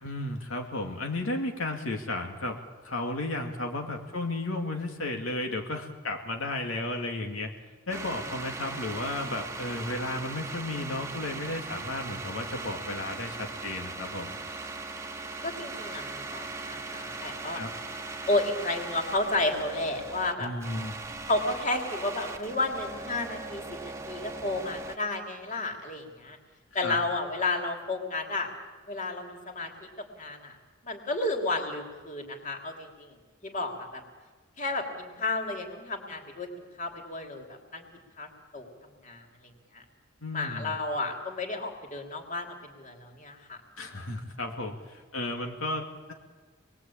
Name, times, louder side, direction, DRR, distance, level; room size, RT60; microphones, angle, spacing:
voice 1, 0.0-2.6 2.8-7.5 7.9-14.4 17.5-17.7 20.4-20.9 26.8-27.0 40.2-40.7 43.8-46.1, left 2 dB, 85° left, 2 dB, 2.5 m, -33 dB
sound 1, 7.9-25.0, right 3 dB, 15° right, 1.3 m, -39 dB
voice 2, 15.4-17.6 18.3-20.5 21.3-23.6 24.0-26.4 26.7-28.5 28.9-30.5 30.8-33.2 33.4-34.0 34.6-37.9 38.2-39.3 39.7-39.8 40.3-43.6, left 2 dB, 40° left, 2 dB, 3.5 m, -32 dB
28.0 x 21.0 x 8.8 m, 1.4 s
head